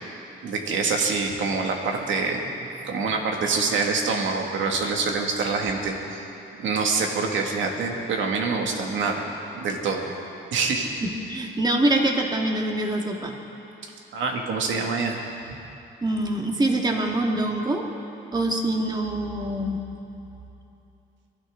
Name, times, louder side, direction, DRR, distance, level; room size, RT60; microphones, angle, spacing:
voice 1, 0.4-2.4 2.8-6.3 6.6-9.3 9.5-10.0 10.5-10.9 13.8-15.2, right 4 dB, 75° right, 1 dB, 2.0 m, -25 dB
voice 2, 11.0-13.3 16.0-17.8 18.3-19.8, right 1 dB, 20° right, 1 dB, 1.8 m, -24 dB
23.0 x 12.5 x 3.8 m, 2.8 s
cardioid pair, 90°, 20 cm